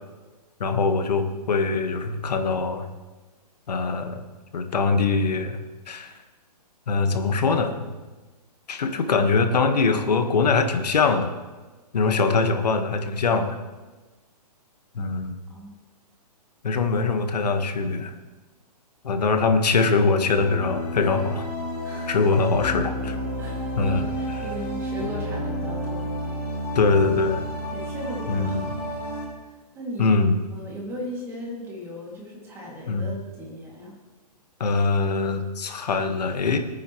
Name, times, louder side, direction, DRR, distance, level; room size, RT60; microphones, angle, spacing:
voice 1, 0.6-2.8 3.7-4.2 4.5-5.6 5.9-6.1 6.9-7.9 8.7-11.3 11.9-13.6 14.9-15.4 16.6-18.1 19.0-21.5 22.1-23.2 23.8-24.0 26.7-27.4 28.3-28.7 30.0-30.4 32.9-33.1 34.6-36.6, left 4 dB, 80° left, 6 dB, 1.5 m, -22 dB
sound 1, 20.2-29.3, equal, 20° left, 3.0 m, -31 dB
voice 2, 21.8-22.2 23.4-26.1 27.7-28.6 29.4-30.2 30.5-34.0, equal, 10° right, -3 dB, 2.5 m, -37 dB
19.0 x 9.5 x 3.2 m, 1.2 s
hypercardioid pair, 160°, 21 cm